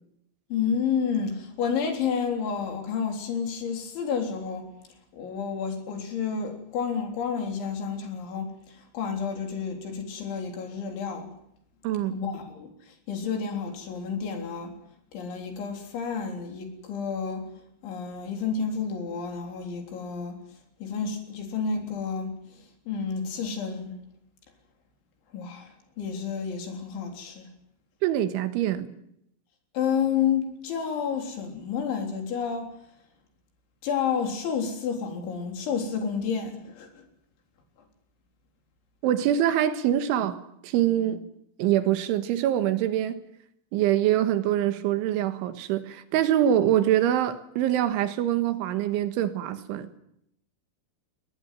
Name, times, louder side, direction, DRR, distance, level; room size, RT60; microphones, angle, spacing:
voice 1, 0.5-4.7 5.1-11.3 12.1-14.8 15.1-17.5 17.8-20.4 20.8-24.0 25.3-27.5 29.7-32.7 33.8-37.1, left 6 dB, 75° left, 6.0 m, -30 dB
voice 2, 11.8-12.2 28.0-29.0 39.0-41.2 41.6-43.2 43.7-50.0, right 11 dB, 85° right, 3.9 m, -24 dB
21.5 x 19.0 x 9.3 m
omnidirectional pair, 5.3 m